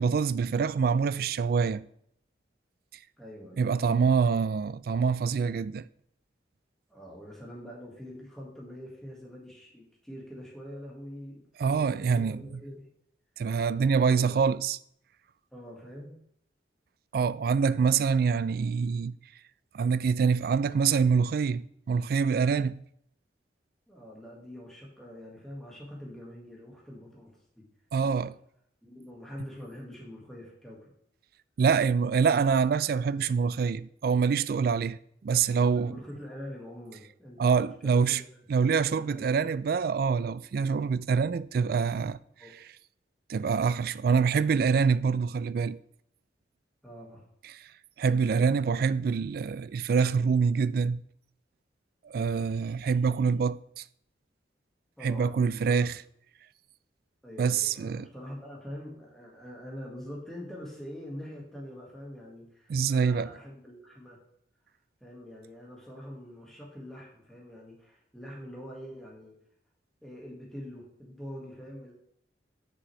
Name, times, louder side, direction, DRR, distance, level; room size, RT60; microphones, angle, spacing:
voice 1, 0.0-1.8 3.6-5.8 11.6-12.6 13.4-14.8 17.1-19.2 19.7-22.8 27.9-28.3 31.6-36.0 37.4-38.2 38.5-42.2 43.3-45.8 47.4-47.7 48.0-51.0 52.0-53.8 55.0-56.0 57.4-58.1 62.7-63.3, right 5 dB, 55° right, 0.3 m, -25 dB
voice 2, 3.2-3.7 6.9-12.9 14.0-14.4 15.5-16.2 23.9-27.7 28.0-28.2 28.8-30.9 35.2-35.3 35.7-38.2 38.9-39.4 42.4-42.5 46.8-47.2 55.0-55.4 55.7-55.9 57.2-64.2 65.0-69.3 70.0-71.9, equal, 5° left, 1.8 m, -44 dB
9.5 x 6.2 x 3.2 m
head